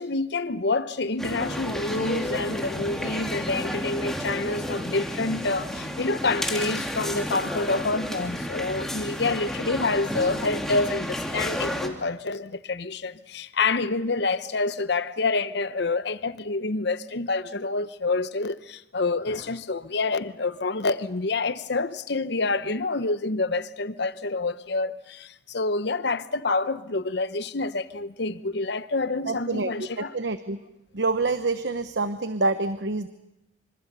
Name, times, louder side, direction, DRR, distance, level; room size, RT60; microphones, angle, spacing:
voice 1, 0.0-30.2, left 3 dB, 60° left, 0.9 m, -27 dB
sound 1, 1.2-11.9, equal, ahead, 2.7 m, -31 dB
voice 2, 29.3-29.7 30.1-30.6 30.9-33.1, right 3 dB, 65° right, 1.0 m, -26 dB
26.5 x 26.0 x 6.9 m
head